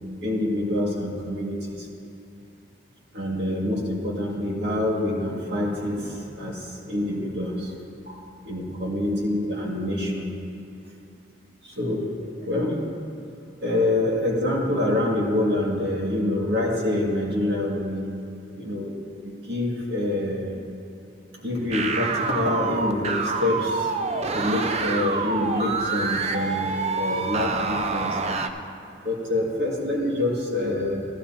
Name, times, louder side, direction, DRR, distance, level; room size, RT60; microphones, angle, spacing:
voice 1, 0.2-1.9 3.1-7.7 8.5-10.3 11.6-12.1 12.4-12.8 13.6-18.0 18.6-19.0 19.2-20.4 21.4-23.9 24.3-28.2 29.0-31.1, left 1 dB, 65° right, -4 dB, 2.2 m, -26 dB
sound 1, 21.7-28.5, right 4 dB, 35° right, 0.5 m, -27 dB
14.5 x 12.0 x 2.9 m, 2.6 s
head